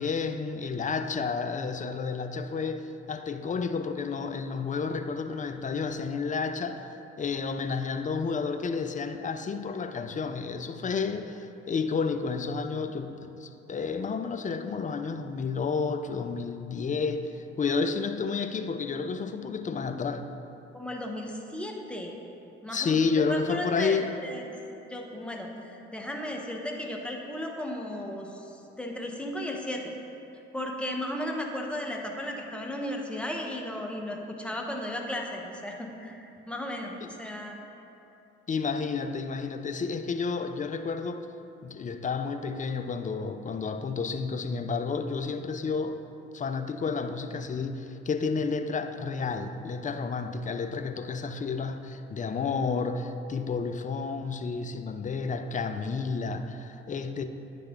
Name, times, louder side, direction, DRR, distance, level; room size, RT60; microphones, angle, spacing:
voice 1, 0.0-6.9 7.2-20.2 22.7-24.1 37.0-37.1 38.5-41.3 41.6-46.0 46.3-57.2, left 5 dB, 25° left, 8 dB, 0.4 m, -31 dB
voice 2, 20.7-22.1 22.6-22.9 23.3-24.5 24.9-29.8 30.5-37.6, left 1 dB, 5° left, 0 dB, 0.9 m, -35 dB
9.8 x 3.3 x 3.7 m, 2.8 s
hypercardioid pair, 45°, 29 cm